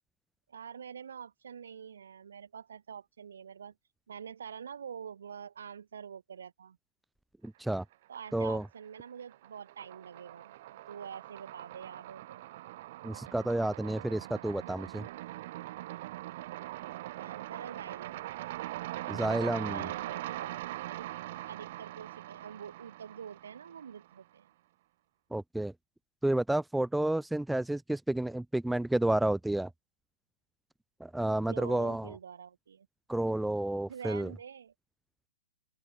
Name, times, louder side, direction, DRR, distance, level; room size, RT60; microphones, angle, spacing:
voice 1, 0.5-3.7 4.1-6.8 8.1-12.4 17.2-18.2 19.7-21.1 21.5-24.5 31.5-32.9 33.9-34.7, right 7 dB, 70° right, 6.7 m, -46 dB
voice 2, 7.4-7.8 8.3-8.6 13.0-15.0 19.1-19.9 25.3-25.7 26.2-29.7 31.0-32.1 33.1-34.3, right 1 dB, 5° right, 0.8 m, -30 dB
sound 1, 7.9-8.7 9.0-24.1, right 16 dB, 55° right, 5.8 m, -42 dB
open air
hypercardioid pair, 115°, 0 cm